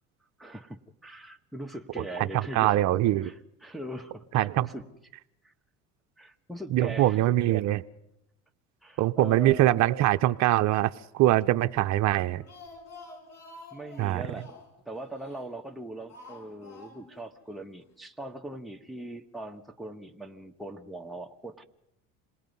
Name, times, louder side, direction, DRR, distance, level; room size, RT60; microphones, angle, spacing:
voice 1, 0.4-2.9 3.2-4.9 5.4-5.5 6.2-7.2 8.8-9.8 13.7-21.6, right 1 dB, ahead, 1.3 m, -41 dB
voice 2, 2.3-3.3 4.3-4.7 6.7-7.8 9.0-12.4 14.0-14.2, right 15 dB, 50° right, 0.7 m, -23 dB
Speech, 12.2-15.7 16.1-17.2 17.5-17.6 17.9-18.0, left 3 dB, 45° left, 7.1 m, -49 dB
27.0 x 19.5 x 5.5 m
supercardioid pair, 95°, 35 cm